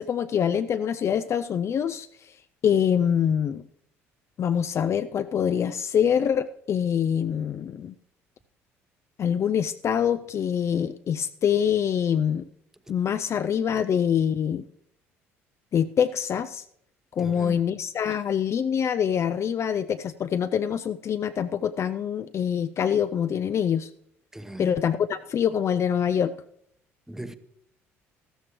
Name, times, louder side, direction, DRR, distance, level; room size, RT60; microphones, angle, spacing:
voice 1, 0.0-2.1 2.6-3.6 4.4-7.9 9.2-12.4 12.9-14.6 15.7-16.6 17.1-23.9 24.6-26.3, left 8 dB, 40° left, 0.5 m, -25 dB
voice 2, 17.2-17.6 24.3-24.8 27.1-27.4, right 1 dB, 5° right, 1.0 m, -38 dB
14.5 x 13.5 x 3.1 m
figure-of-eight pair, 55°, 7 cm